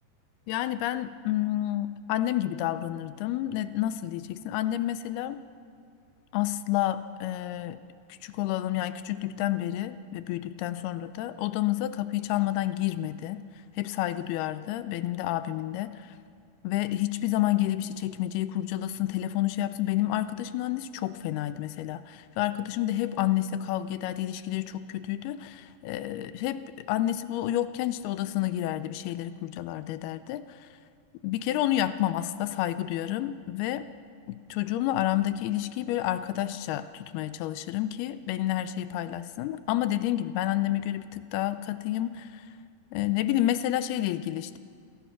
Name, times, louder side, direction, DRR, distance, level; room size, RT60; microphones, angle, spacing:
voice 1, 0.5-5.4 6.3-7.8 8.2-13.4 13.8-16.1 16.6-26.6 26.9-30.4 31.2-33.8 34.3-42.4 42.9-44.6, left 13 dB, 80° left, 12 dB, 2.5 m, -29 dB
27.5 x 16.5 x 6.0 m, 2.1 s
omnidirectional pair, 4.7 m